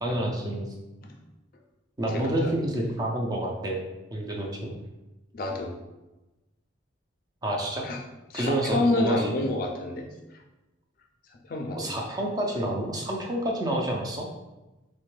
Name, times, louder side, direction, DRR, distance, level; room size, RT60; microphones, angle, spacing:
voice 1, 0.0-0.7 2.0-3.8 4.1-4.7 7.4-7.9 8.3-9.4 11.7-14.3, right 1 dB, 20° right, 0 dB, 0.4 m, -28 dB
voice 2, 2.1-2.5 5.3-5.7 7.8-8.0 8.3-10.1 11.5-12.0, left 2 dB, 50° left, 2 dB, 0.4 m, -28 dB
3.3 x 2.2 x 3.1 m, 1.0 s
head